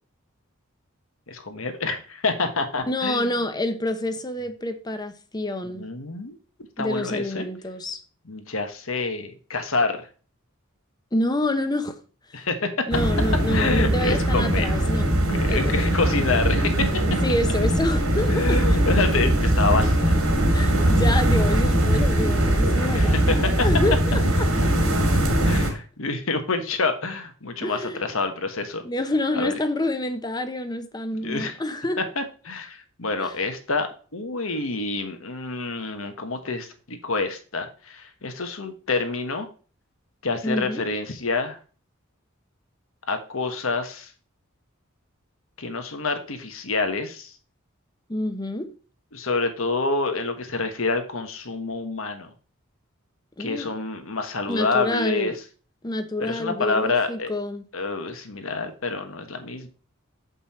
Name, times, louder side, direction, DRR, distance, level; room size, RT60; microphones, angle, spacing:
voice 1, 1.3-3.3 5.7-6.4 6.8-7.5 8.2-10.1 12.3-12.8 13.5-14.7 15.3-16.9 18.3-20.2 22.9-23.4 25.4-28.8 29.3-29.5 31.1-31.6 32.2-39.5 40.2-41.6 43.1-44.1 45.6-47.3 49.1-52.3 53.4-55.3 56.2-57.3 57.7-59.7, left 3 dB, 70° left, 1.3 m, -27 dB
voice 2, 2.9-5.9 6.8-8.0 11.1-12.0 12.9-15.1 15.5-15.9 17.2-18.8 20.5-24.5 27.6-28.0 28.8-32.0 33.2-33.3 40.4-40.8 48.1-48.7 53.4-53.7 54.5-55.4 55.8-57.6, left 1 dB, 20° left, 0.8 m, -27 dB
sound 1, 12.9-25.7, right 1 dB, 85° right, 2.7 m, -21 dB
7.7 x 5.4 x 4.2 m
head